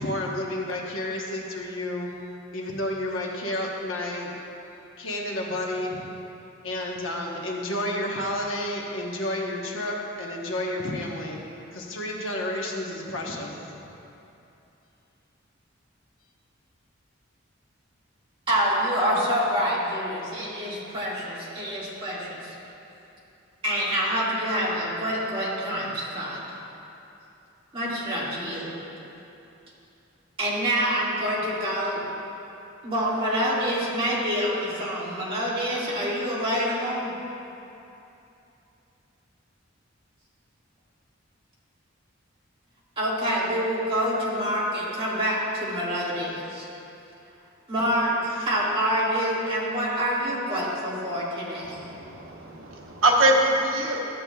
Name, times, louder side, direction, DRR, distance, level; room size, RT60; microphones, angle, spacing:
voice 1, 0.0-2.1 2.5-4.3 5.0-6.0 6.6-11.4 11.7-13.8, left 1 dB, 75° left, -1 dB, 1.1 m, -31 dB
voice 2, 18.5-22.5 23.6-26.4 27.7-28.7 30.4-32.0 32.8-37.1 43.0-46.7 47.7-51.9, equal, 25° right, -8 dB, 1.9 m, -26 dB
voice 3, 51.6-54.0, right 1 dB, 85° right, 0 dB, 1.0 m, -23 dB
13.0 x 7.7 x 2.3 m, 2.8 s
head